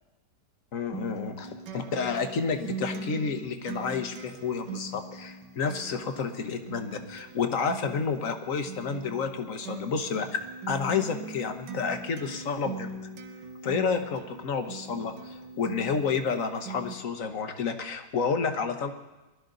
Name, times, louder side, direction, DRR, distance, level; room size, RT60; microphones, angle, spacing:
voice 1, 0.7-10.3 10.7-12.9 13.6-18.9, left 5 dB, 55° left, 7 dB, 1.3 m, -30 dB
Acoustic guitar, 0.9-16.9, right 3 dB, 85° right, 1.7 m, -41 dB
20.0 x 12.0 x 3.9 m, 1.1 s
omnidirectional pair, 1.8 m